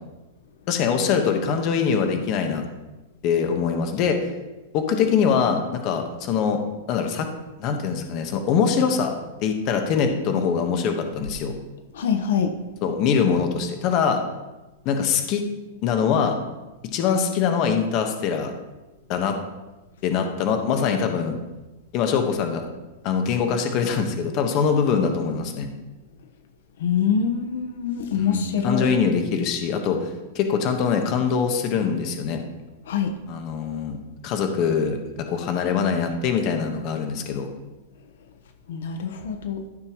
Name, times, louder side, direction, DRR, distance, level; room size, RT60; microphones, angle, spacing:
voice 1, 0.7-2.6 3.2-4.2 4.7-6.6 6.9-7.3 7.6-9.1 9.4-11.5 12.8-14.2 14.8-15.4 15.8-16.4 16.9-18.5 19.1-19.4 20.0-21.4 21.9-22.7 23.0-25.7 28.1-30.1 30.3-32.4 33.3-34.0 34.2-35.0 35.3-37.5, left 6 dB, 35° left, 5 dB, 1.2 m, -23 dB
voice 2, 11.9-12.6 26.8-28.9 32.9-33.1 38.7-39.6, left 6 dB, 75° left, 6 dB, 1.0 m, -25 dB
13.5 x 6.8 x 3.0 m, 1.1 s
supercardioid pair, 155°, 0 cm